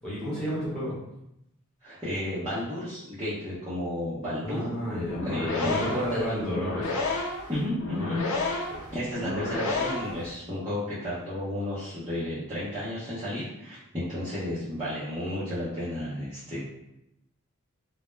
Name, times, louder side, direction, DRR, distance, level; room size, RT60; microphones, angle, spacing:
voice 1, 0.0-1.0 4.4-7.0 8.7-8.8, equal, 5° left, -10 dB, 0.9 m, -32 dB
voice 2, 1.8-4.8 5.2-6.5 7.5-8.3 8.7-16.6, left 1 dB, 20° right, -12 dB, 0.6 m, -32 dB
sound 1, 5.0-10.3, left 2 dB, 80° left, 0.4 m, -31 dB
2.1 x 2.0 x 3.1 m, 0.84 s
head